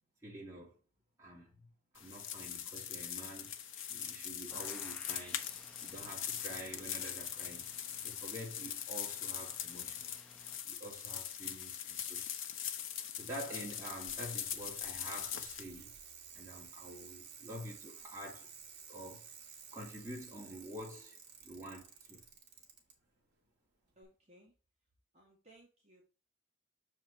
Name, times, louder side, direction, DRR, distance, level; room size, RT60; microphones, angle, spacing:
voice 1, 0.2-0.7 1.2-1.7 1.9-3.5 3.9-5.4 5.8-7.8 8.0-10.1 10.6-12.3 13.2-15.9 16.3-18.5 18.9-19.3 19.7-22.2, right 1 dB, 15° right, 2.6 m, -48 dB
sound 1, 2.0-15.6, left 9 dB, 65° left, 0.8 m, -42 dB
sound 2, 4.5-10.6, left 1 dB, 5° left, 0.5 m, -59 dB
Bicycle, 13.4-22.9 24.0-24.1, right 7 dB, 50° right, 1.9 m, -54 dB
voice 2, 24.0-24.5 25.1-26.0, right 1 dB, 30° right, 2.1 m, -62 dB
6.5 x 4.7 x 4.3 m
head